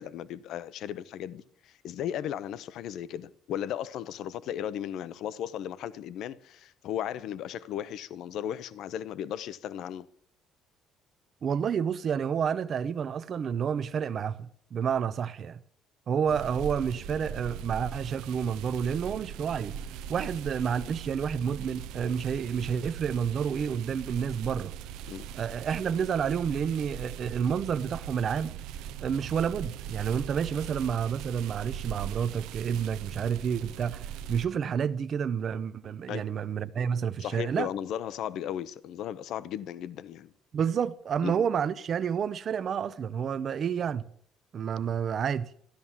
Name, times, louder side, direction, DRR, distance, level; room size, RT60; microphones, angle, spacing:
voice 1, 0.0-10.1 25.1-25.3 36.1-36.2 37.2-40.3 41.2-41.4, left 10 dB, 60° left, 0.7 m, -36 dB
voice 2, 11.4-15.6 16.1-19.8 20.1-24.7 25.3-28.6 29.0-37.7 40.5-44.0 44.5-45.5, right 7 dB, 40° right, 0.5 m, -29 dB
sound 1, 16.3-34.4, right 9 dB, 85° right, 0.6 m, -40 dB
13.0 x 12.5 x 7.2 m
cardioid pair, 155°, 0 cm